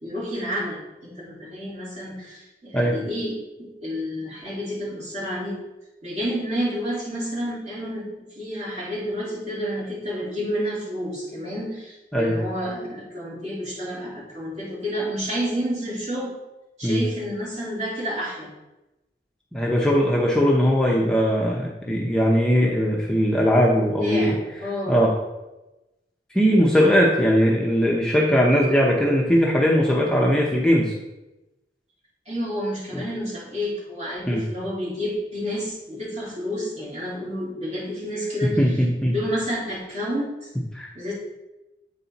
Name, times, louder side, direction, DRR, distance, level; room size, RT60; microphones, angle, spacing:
voice 1, 0.0-5.6 6.0-16.3 16.8-18.5 21.9-22.1 24.0-25.0 26.7-26.9 32.3-38.6 39.1-40.5 40.9-41.1, equal, 40° right, -7 dB, 2.6 m, -30 dB
voice 2, 19.5-24.4 24.9-25.1 26.3-30.9 34.3-34.4 38.4-39.1 40.7-40.9, equal, 5° left, -3 dB, 0.6 m, -20 dB
8.3 x 4.2 x 4.0 m, 1.0 s
head